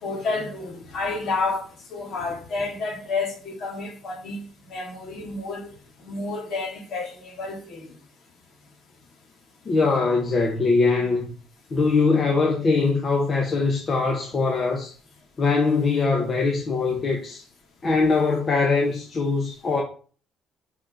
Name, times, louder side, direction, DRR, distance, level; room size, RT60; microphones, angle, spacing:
voice 1, 0.0-4.4 4.7-5.7 6.0-7.9, left 3 dB, 45° left, 2.7 m, -30 dB
voice 2, 9.6-11.3 11.7-14.9 15.4-17.4 17.8-19.8, left 4 dB, 25° left, 1.2 m, -22 dB
5.8 x 5.4 x 5.8 m
cardioid pair, 170°, 0 cm